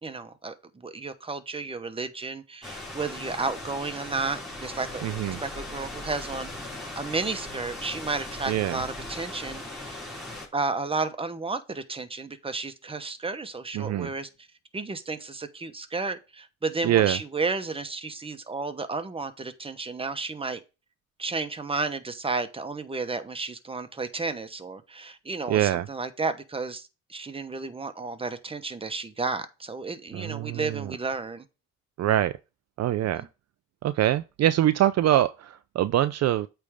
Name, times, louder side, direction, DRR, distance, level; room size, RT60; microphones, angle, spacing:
voice 1, 0.0-6.5 7.0-10.1 10.5-14.3 14.7-20.6 21.2-31.4, right 3 dB, 20° right, 1.0 m, -32 dB
sound 1, 2.6-10.5, left 2 dB, ahead, 3.9 m, -38 dB
voice 2, 5.0-5.4 8.5-8.8 13.7-14.1 16.8-17.2 25.5-25.9 30.1-30.9 32.0-32.4 32.8-33.3 33.8-36.5, right 12 dB, 60° right, 0.5 m, -24 dB
8.3 x 3.5 x 5.1 m
cardioid pair, 90°, 30 cm